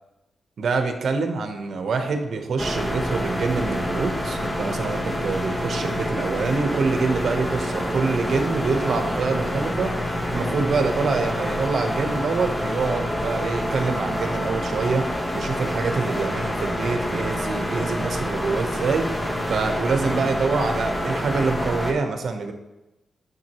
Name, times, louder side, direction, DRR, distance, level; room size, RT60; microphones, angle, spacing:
voice 1, 0.6-22.5, right 4 dB, 70° right, 6 dB, 1.0 m, -25 dB
sound 1, 2.6-21.9, equal, 15° left, 1.2 m, -27 dB
9.5 x 6.2 x 3.0 m, 0.97 s
wide cardioid pair, 110°, 0 cm